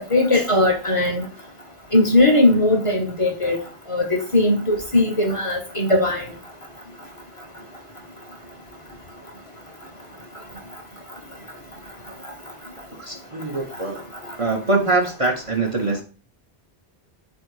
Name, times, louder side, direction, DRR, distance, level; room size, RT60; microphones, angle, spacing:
voice 1, 0.1-1.2 1.9-3.6 3.9-6.3, left 2 dB, 35° left, 2 dB, 0.7 m, -19 dB
voice 2, 12.9-14.1 14.4-16.0, right 3 dB, 40° right, 0 dB, 0.6 m, -23 dB
4.3 x 2.6 x 4.5 m, 0.36 s
omnidirectional pair, 1.0 m